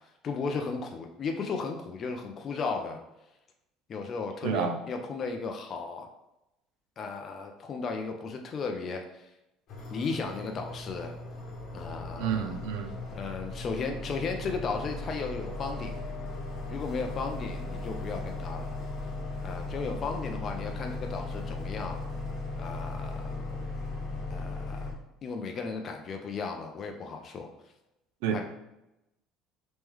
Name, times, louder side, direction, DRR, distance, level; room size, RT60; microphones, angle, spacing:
voice 1, 0.2-3.0 3.9-6.1 7.0-9.3 9.9-11.2 11.7-12.6 13.1-16.0 16.7-18.8 19.4-22.0 22.6-23.7 24.3-24.9 25.2-27.5 28.3-28.4, left 4 dB, 40° left, 4 dB, 0.4 m, -35 dB
voice 2, 4.4-4.7 12.2-12.9 28.2-28.4, right 7 dB, 85° right, 6 dB, 0.5 m, -29 dB
sound 1, 9.7-24.9, left 2 dB, 55° left, 1.3 m, -37 dB
3.1 x 3.1 x 3.5 m, 0.90 s
cardioid pair, 125°, 0 cm